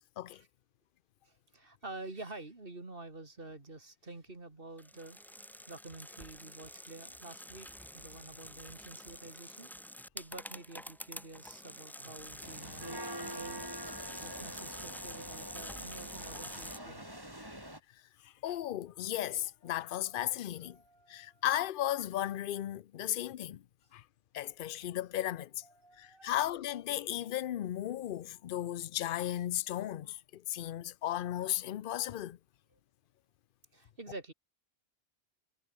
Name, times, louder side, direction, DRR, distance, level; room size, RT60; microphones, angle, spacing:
voice 1, 1.2-5.2 5.7-7.7 7.9-9.7 10.1-13.7 14.1-17.1 19.6-20.2 20.6-21.4 25.6-26.4 33.7-34.3, right 2 dB, 60° right, 3.2 m, -49 dB
sound 1, 4.8-16.8, equal, ahead, 0.8 m, -47 dB
sound 2, 12.4-17.8, right 1 dB, 20° right, 6.1 m, -45 dB
voice 2, 18.4-20.8 21.1-23.6 23.9-24.0 24.3-25.6 26.0-32.4, left 12 dB, 60° left, 0.7 m, -35 dB
omnidirectional pair, 1.1 m